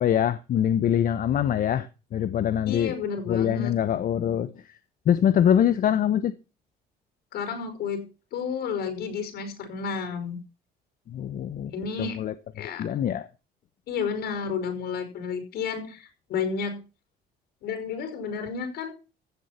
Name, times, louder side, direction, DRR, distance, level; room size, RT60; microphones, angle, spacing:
voice 1, 0.0-2.9 3.3-4.6 5.1-6.3 11.1-11.7 12.0-13.3, left 9 dB, 55° left, 1.0 m, -24 dB
voice 2, 2.7-3.7 7.3-8.0 8.3-10.4 11.7-12.2 12.6-12.8 13.9-16.8 17.6-18.9, left 6 dB, 75° left, 5.5 m, -31 dB
15.5 x 7.5 x 5.8 m
cardioid pair, 110°, 17 cm